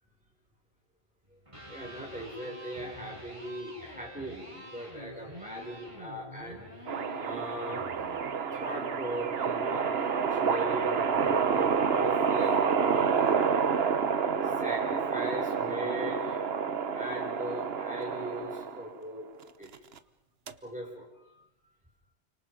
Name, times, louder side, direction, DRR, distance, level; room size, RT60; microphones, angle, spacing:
Electric guitar, 1.3-9.4, equal, 30° right, 5.7 m, -48 dB
voice 1, 1.7-13.4 14.4-16.4 16.9-19.3 19.6-19.7 20.6-21.4, equal, 5° right, -2 dB, 6.2 m, -39 dB
sound 1, 6.9-19.0 19.7-20.0 20.5-20.6, right 6 dB, 65° right, 1.3 m, -28 dB
29.5 x 25.5 x 5.3 m, 0.87 s
omnidirectional pair, 1.1 m